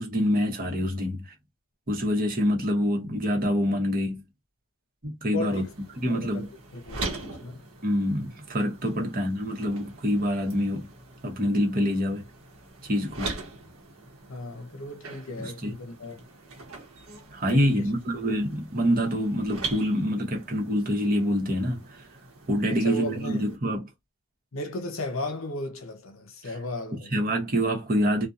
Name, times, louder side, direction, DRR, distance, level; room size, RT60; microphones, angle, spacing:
voice 1, 0.0-1.3 1.9-4.2 5.0-5.6 6.0-6.5 7.8-10.9 11.2-12.2 12.8-13.3 15.4-15.7 17.3-21.8 22.5-23.8 27.1-28.3, equal, 40° right, 0.9 m, -26 dB
voice 2, 5.3-5.7 6.0-7.6 8.9-9.3 14.3-16.2 17.4-17.9 22.7-23.4 24.5-27.2, left 2 dB, 70° left, 0.7 m, -35 dB
sound 1, 5.5-23.6, right 3 dB, 75° right, 1.0 m, -42 dB
2.7 x 2.2 x 2.4 m
head